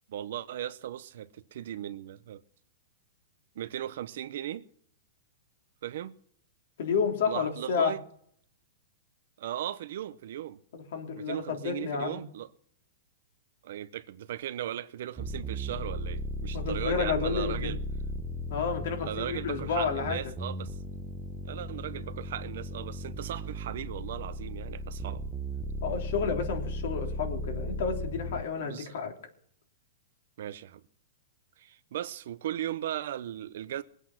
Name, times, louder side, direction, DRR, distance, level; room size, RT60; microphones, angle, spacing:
voice 1, 0.1-2.4 3.5-4.6 5.8-6.1 7.3-8.0 9.4-10.6 11.2-12.5 13.6-17.8 19.0-20.8 21.4-25.2 28.6-28.9 30.4-30.8 31.6-33.8, right 11 dB, 65° right, 0.9 m, -37 dB
voice 2, 6.8-7.9 10.7-12.2 16.5-17.7 18.5-20.2 25.8-29.1, left 6 dB, 65° left, 3.4 m, -31 dB
sound 1, 15.2-28.4, equal, 5° right, 1.0 m, -36 dB
21.0 x 8.3 x 5.9 m
hypercardioid pair, 155°, 0 cm